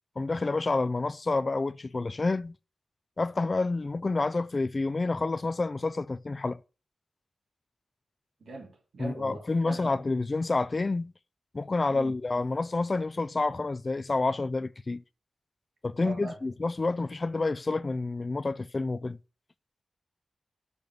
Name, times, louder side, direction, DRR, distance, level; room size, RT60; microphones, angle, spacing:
voice 1, 0.2-2.5 3.2-6.6 9.0-11.1 11.5-15.0 15.8-19.2, left 3 dB, 30° left, 0.3 m, -29 dB
voice 2, 8.4-9.9 11.9-12.1 16.0-16.4, right 3 dB, 80° right, 2.9 m, -41 dB
6.8 x 6.8 x 5.9 m
wide cardioid pair, 155°, 0 cm